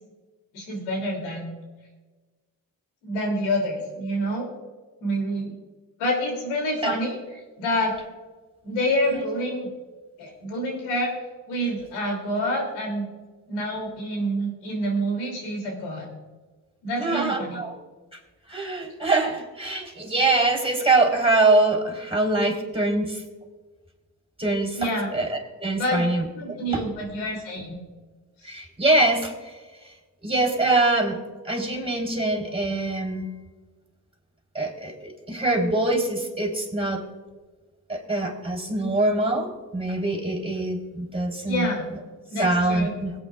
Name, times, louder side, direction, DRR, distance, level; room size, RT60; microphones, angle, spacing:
voice 1, 0.5-1.5 3.0-4.5 5.0-5.5 6.0-7.9 8.6-9.7 10.2-11.1 11.5-13.0 13.5-16.1 16.8-17.6 24.7-25.1 25.8-26.1 26.3-27.8 28.4-28.5 41.4-41.9 42.3-42.9, equal, 90° left, 0 dB, 2.9 m, -27 dB
voice 2, 17.0-17.7 18.5-23.2 24.4-24.8 25.1-26.2 26.7-26.8 28.4-29.3 30.2-31.2 31.5-33.3 34.6-37.0 37.9-41.7 42.4-43.1, right 2 dB, 10° right, 0 dB, 3.7 m, -24 dB
22.5 x 8.6 x 2.4 m, 1.3 s
hypercardioid pair, 45°, 48 cm